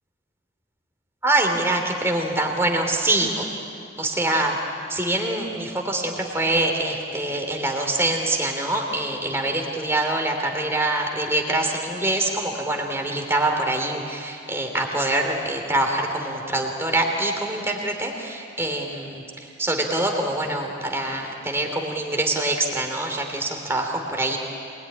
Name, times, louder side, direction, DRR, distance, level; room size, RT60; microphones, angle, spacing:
voice 1, 1.2-3.5 4.0-4.6 4.9-24.4, right 2 dB, 10° right, 2 dB, 2.9 m, -24 dB
25.5 x 21.0 x 10.0 m, 2.5 s
head